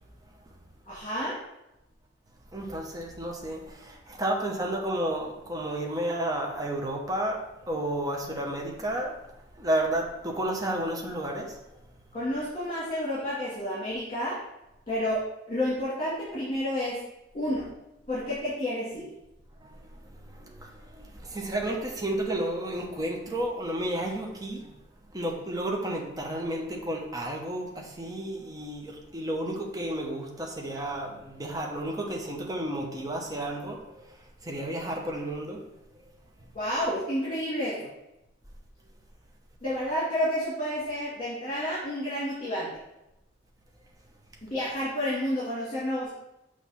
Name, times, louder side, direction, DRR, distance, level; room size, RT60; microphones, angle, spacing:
voice 1, 0.9-1.4 12.1-14.4 14.9-15.2 15.5-17.0 17.3-17.6 18.1-19.0 36.5-37.9 39.6-42.7 44.4-46.1, left 1 dB, 30° left, -9 dB, 2.0 m, -30 dB
voice 2, 2.5-9.2 9.6-11.6 19.6-24.7 25.1-35.6, right 1 dB, 20° right, 0 dB, 0.8 m, -32 dB
6.5 x 3.1 x 5.7 m, 0.90 s
head